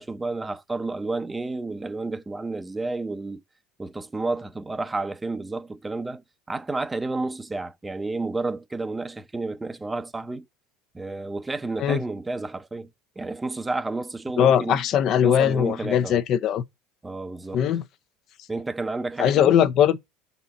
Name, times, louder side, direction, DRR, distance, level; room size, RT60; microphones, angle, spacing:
voice 1, 0.0-3.4 3.8-6.2 6.5-10.4 10.9-12.9 13.2-14.8 15.2-16.2 17.0-17.6 18.5-19.6, right 3 dB, 15° right, 0.6 m, -31 dB
voice 2, 14.4-16.6 17.5-17.8 19.2-20.0, left 9 dB, 50° left, 0.6 m, -20 dB
6.1 x 4.1 x 4.0 m
supercardioid pair, 115°, 0 cm